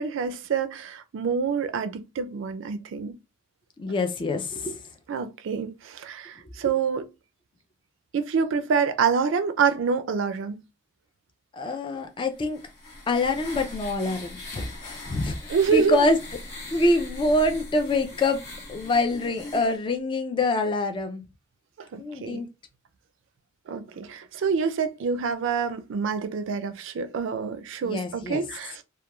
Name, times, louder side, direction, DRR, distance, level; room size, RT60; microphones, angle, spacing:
voice 1, 0.0-3.1 5.1-7.1 8.1-10.6 15.5-16.1 21.8-22.4 23.7-28.8, right 6 dB, 65° right, 0.3 m, -27 dB
voice 2, 3.8-4.8 11.5-12.6 13.1-16.2 16.7-18.4 18.7-21.2 22.0-22.5 27.8-28.4, left 2 dB, 25° left, 0.3 m, -25 dB
sound 1, 12.3-19.8, left 2 dB, 55° left, 1.0 m, -40 dB
2.9 x 2.2 x 2.2 m
head